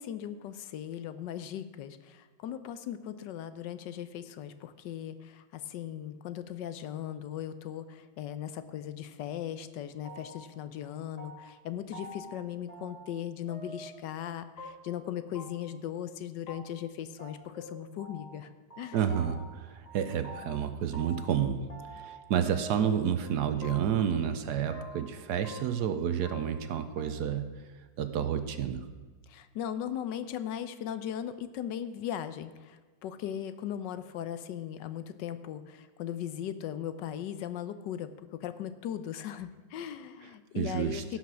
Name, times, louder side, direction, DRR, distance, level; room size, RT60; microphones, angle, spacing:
voice 1, 0.0-18.5 18.8-19.0 29.3-41.0, left 10 dB, 75° left, 12 dB, 1.3 m, -38 dB
sound 1, 10.0-10.5 10.8-11.6 11.9-12.3 12.7-13.2 13.5-14.0 14.6-15.0 15.3-15.4 15.7-15.8 16.1-16.2 16.5-16.6 16.8-16.9 17.2-18.4 18.7-19.6 19.8-21.4 21.7-22.2 22.5-23.3 23.6-24.1 24.3-25.1 25.4-26.7 27.0-27.1, equal, 20° left, 1.8 m, -46 dB
voice 2, 18.9-27.5 28.0-28.8 40.5-41.0, right 8 dB, 70° right, 10 dB, 1.2 m, -30 dB
16.5 x 5.8 x 6.2 m, 1.3 s
omnidirectional pair, 2.0 m